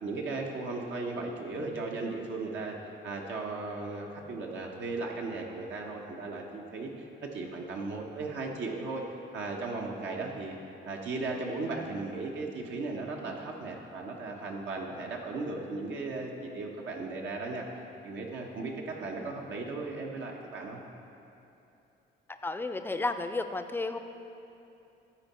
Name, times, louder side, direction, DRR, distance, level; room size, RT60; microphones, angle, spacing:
voice 1, 0.0-2.8 3.0-9.0 9.3-10.6 10.8-17.7 18.0-20.8, right 3 dB, 70° right, -1 dB, 1.0 m, -36 dB
voice 2, 22.4-24.0, left 3 dB, 10° left, 8 dB, 0.4 m, -32 dB
13.0 x 4.5 x 4.2 m, 2.8 s
cardioid pair, 90°, 20 cm